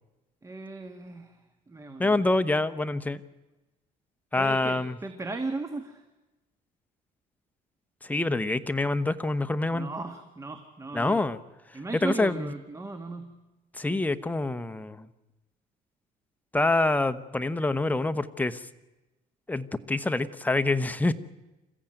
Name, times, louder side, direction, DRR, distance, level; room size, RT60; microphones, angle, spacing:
voice 1, 0.4-2.2 4.3-6.0 9.7-11.2 11.7-13.3, right 3 dB, 20° right, 7 dB, 1.7 m, -37 dB
voice 2, 2.0-3.2 4.3-5.0 8.0-9.9 10.9-11.4 12.0-12.5 13.8-15.1 16.5-18.6 19.5-21.1, left 2 dB, 10° left, 11 dB, 1.0 m, -26 dB
27.5 x 14.5 x 9.1 m, 1.1 s
cardioid pair, 110°, 17 cm